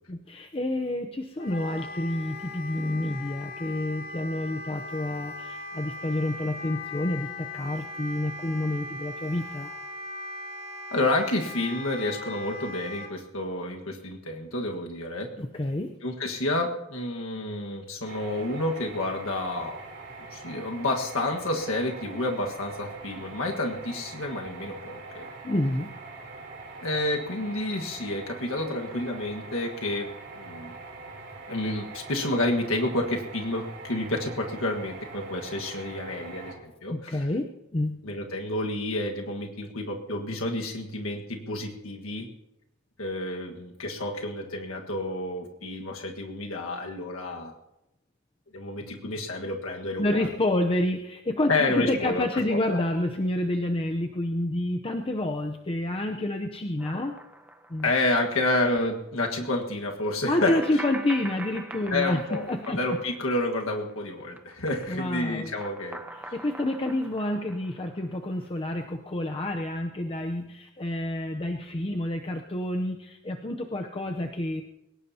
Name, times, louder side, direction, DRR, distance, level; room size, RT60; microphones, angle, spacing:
voice 1, 0.1-9.7 15.4-15.9 25.4-25.9 36.9-38.0 50.0-57.1 57.7-57.9 60.3-62.8 64.9-65.5 66.3-74.6, left 1 dB, 30° left, 4 dB, 0.7 m, -29 dB
Wind instrument woodwind instrument, 1.4-13.1, left 2 dB, 50° left, 2.1 m, -39 dB
voice 2, 10.9-15.3 16.0-19.8 20.3-25.3 26.8-30.1 30.3-30.7 31.5-37.2 38.0-42.3 43.0-47.5 48.5-50.3 51.5-52.2 52.5-52.6 57.8-60.5 61.9-66.0 66.2-66.3, left 2 dB, 85° left, 2 dB, 1.6 m, -29 dB
sound 1, 18.1-36.6, right 3 dB, 60° right, 3.3 m, -43 dB
sound 2, 56.8-58.4 58.7-58.8 60.5-63.9 64.2-68.4, right 2 dB, 10° right, 0.8 m, -44 dB
21.5 x 18.5 x 2.8 m, 0.91 s
head